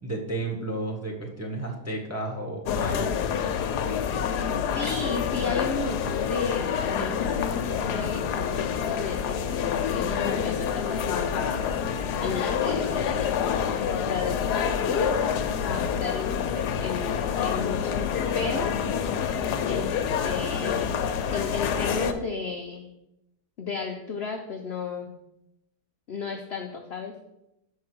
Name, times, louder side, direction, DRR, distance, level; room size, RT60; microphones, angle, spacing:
voice 1, 0.0-3.1, right 2 dB, 10° right, 0 dB, 1.1 m, -32 dB
sound 1, 2.7-22.1, left 7 dB, 75° left, 1.2 m, -27 dB
voice 2, 4.7-11.7 12.2-13.1 13.9-15.2 15.6-18.0 18.3-18.8 19.6-19.9 20.2-22.9 23.6-25.1 26.1-27.1, left 4 dB, 55° left, 3 dB, 0.7 m, -33 dB
6.5 x 4.7 x 6.1 m, 0.86 s
omnidirectional pair, 1.8 m